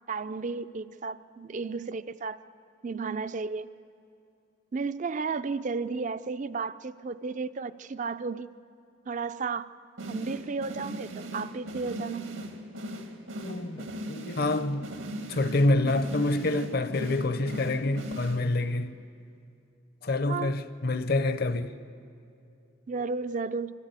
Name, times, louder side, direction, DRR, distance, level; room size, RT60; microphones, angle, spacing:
voice 1, 0.1-2.4 2.8-3.7 4.7-8.5 9.1-9.7 10.1-12.3 20.3-20.5 22.9-23.7, right 4 dB, 40° right, 0.4 m, -33 dB
sound 1, 10.0-18.8, right 1 dB, 90° right, 1.9 m, -39 dB
voice 2, 13.4-14.9 15.3-19.0 20.0-21.7, left 2 dB, 50° left, 0.8 m, -27 dB
25.0 x 14.0 x 8.2 m
head